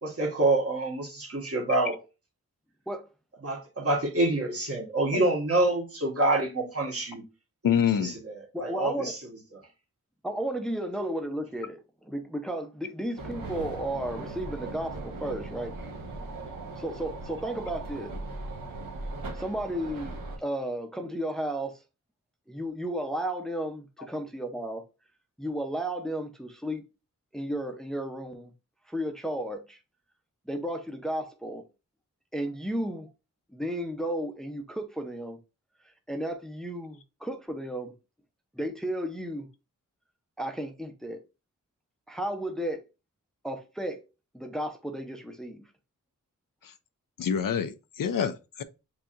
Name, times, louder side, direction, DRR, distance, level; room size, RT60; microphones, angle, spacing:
voice 1, 0.0-2.0 3.4-7.2 8.0-8.3 8.6-9.2, right 2 dB, 45° right, 1.5 m, -27 dB
voice 2, 7.6-8.2 46.6-46.7 47.2-48.6, left 8 dB, 85° left, 0.6 m, -27 dB
voice 3, 8.5-9.1 10.2-11.8 12.1-15.7 16.8-18.1 19.4-21.8 22.5-24.8 25.4-26.8 27.3-28.5 28.9-29.8 30.5-31.6 32.3-33.1 33.5-35.4 36.1-37.9 38.5-39.5 40.4-41.2 42.1-42.8 43.4-44.0 44.3-45.6, right 1 dB, ahead, 0.6 m, -33 dB
sound 1, 13.2-20.4, right 2 dB, 85° right, 1.2 m, -38 dB
6.9 x 2.8 x 2.5 m
wide cardioid pair, 120°, 32 cm